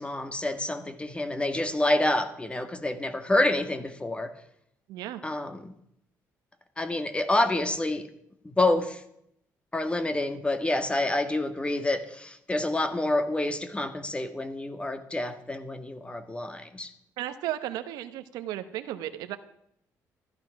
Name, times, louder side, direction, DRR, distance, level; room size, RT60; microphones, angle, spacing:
voice 1, 0.0-4.3 5.2-5.7 6.8-8.1 8.4-9.0 9.7-16.9, left 2 dB, 15° left, 9 dB, 1.8 m, -28 dB
voice 2, 4.9-5.2 17.2-19.4, right 13 dB, 90° right, 10 dB, 1.1 m, -34 dB
14.5 x 12.0 x 6.0 m, 0.74 s
supercardioid pair, 75°, 7 cm